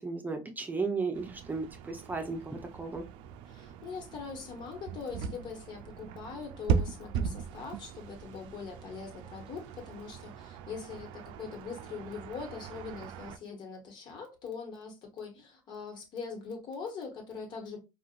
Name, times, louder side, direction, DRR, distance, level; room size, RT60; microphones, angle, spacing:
voice 1, 0.0-3.0, right 4 dB, 20° right, 0.7 m, -35 dB
sound 1, 1.1-13.4, right 7 dB, 70° right, 0.4 m, -38 dB
voice 2, 3.5-17.8, left 5 dB, 55° left, 1.3 m, -42 dB
3.6 x 2.5 x 2.4 m
supercardioid pair, 80°, 9 cm